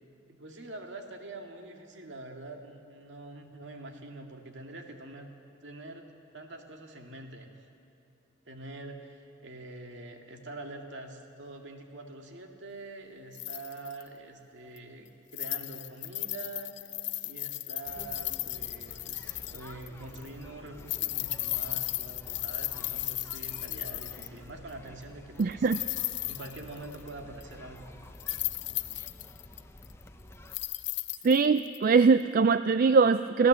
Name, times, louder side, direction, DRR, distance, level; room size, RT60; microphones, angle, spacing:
voice 1, 0.3-5.3 5.6-6.1 6.3-7.5 8.5-16.9 17.2-25.7 26.3-27.9, right 2 dB, 65° right, 3 dB, 2.2 m, -45 dB
sound 1, 13.3-14.0 14.8-14.9 15.3-19.9 20.1-20.3 20.8-24.4 25.4-27.1 27.4-27.5 28.1-30.0 30.5-31.8 32.2-32.3, left 17 dB, 65° left, 0.7 m, -35 dB
sound 2, 17.9-30.6, left 1 dB, 15° left, 1.0 m, -50 dB
voice 2, 25.4-25.8 31.2-33.5, right 4 dB, 45° right, 13 dB, 0.4 m, -22 dB
25.5 x 16.0 x 7.6 m, 2.9 s
head